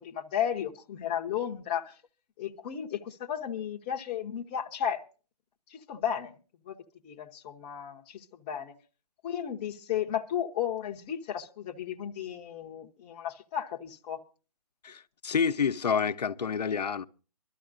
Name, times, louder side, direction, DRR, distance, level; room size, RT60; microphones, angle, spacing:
voice 1, 0.0-1.9 2.4-5.0 5.7-6.4 6.6-6.8 7.0-8.7 9.2-14.2, left 9 dB, 15° left, 0.6 m, -34 dB
voice 2, 14.8-17.0, left 6 dB, 80° left, 0.7 m, -28 dB
23.5 x 13.0 x 2.5 m
hypercardioid pair, 160°, 20 cm